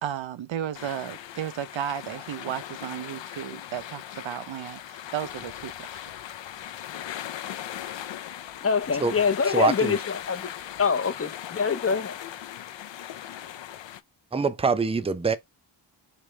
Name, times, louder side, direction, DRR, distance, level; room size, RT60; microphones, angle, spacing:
voice 1, 0.0-6.0, right 10 dB, 85° right, 0.7 m, -34 dB
sound 1, 0.7-14.0, left 11 dB, 75° left, 0.6 m, -39 dB
voice 2, 8.6-10.5 10.8-12.2, left 5 dB, 30° left, 0.6 m, -25 dB
voice 3, 9.5-10.0 14.3-15.4, right 4 dB, 15° right, 0.4 m, -24 dB
5.0 x 3.0 x 3.2 m
wide cardioid pair, 165°, 45 cm